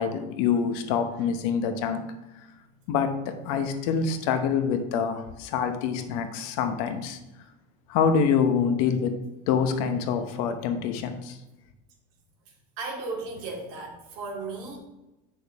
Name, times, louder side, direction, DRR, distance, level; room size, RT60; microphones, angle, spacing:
voice 1, 0.0-2.0 2.9-7.2 7.9-9.2 9.5-11.4, left 6 dB, 60° left, 7 dB, 1.0 m, -26 dB
voice 2, 12.8-14.8, right 3 dB, 55° right, -1 dB, 2.2 m, -35 dB
8.6 x 6.3 x 3.5 m, 0.98 s
cardioid pair, 170°, 21 cm